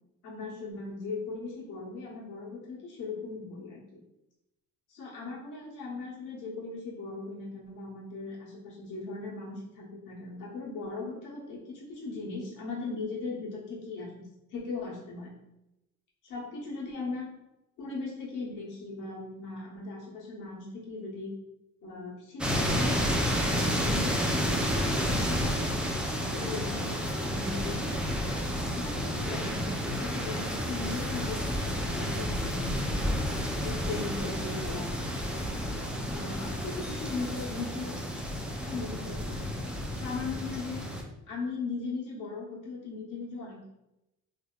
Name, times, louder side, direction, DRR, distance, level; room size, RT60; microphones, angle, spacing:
voice 1, 0.2-4.0 4.9-15.3 16.2-17.3 17.8-21.3 21.8-27.8 28.7-32.9 33.6-34.9 36.1-37.9 38.6-39.6 39.9-40.8 41.3-43.7, left 3 dB, 85° left, -5 dB, 1.3 m, -39 dB
sound 1, 22.4-41.0, equal, 5° right, 0.5 m, -31 dB
3.3 x 2.7 x 2.4 m, 0.90 s
cardioid pair, 90°, 30 cm